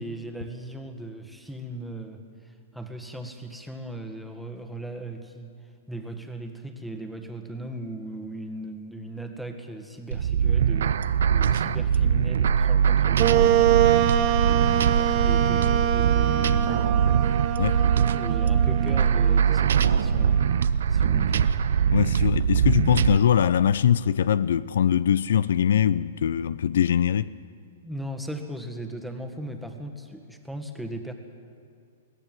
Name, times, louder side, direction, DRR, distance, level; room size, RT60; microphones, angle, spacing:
voice 1, 0.0-5.5 5.9-11.0 11.3-14.3 14.8-17.3 17.8-20.4 20.9-21.5 27.8-31.1, right 1 dB, ahead, 1.8 m, -38 dB
sound 1, 10.1-23.2, right 8 dB, 75° right, 0.7 m, -22 dB
Wind instrument woodwind instrument, 13.2-20.6, right 12 dB, 40° right, 1.0 m, -25 dB
voice 2, 21.9-27.3, left 9 dB, 75° left, 0.5 m, -22 dB
22.0 x 16.5 x 7.6 m
hypercardioid pair, 130°, 0 cm